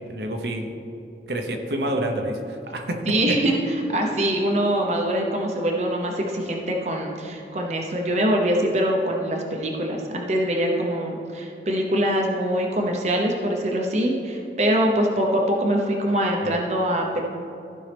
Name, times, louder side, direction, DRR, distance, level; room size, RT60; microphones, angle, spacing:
voice 1, 0.1-0.7 1.3-3.0 16.4-16.6, right 1 dB, 70° right, 3 dB, 0.9 m, -28 dB
voice 2, 3.1-17.2, right 1 dB, 40° right, 1 dB, 0.8 m, -23 dB
15.0 x 5.4 x 3.4 m, 2.7 s
head